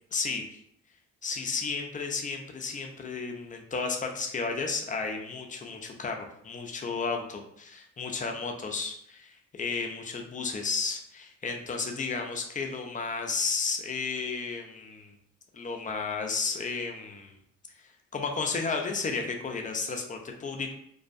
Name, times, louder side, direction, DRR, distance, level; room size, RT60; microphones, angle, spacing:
voice 1, 0.1-0.6 1.2-15.1 15.5-17.3 17.8-20.7, left 4 dB, 25° left, 2 dB, 0.4 m, -33 dB
2.6 x 2.1 x 2.4 m, 0.71 s
cardioid pair, 90°, 30 cm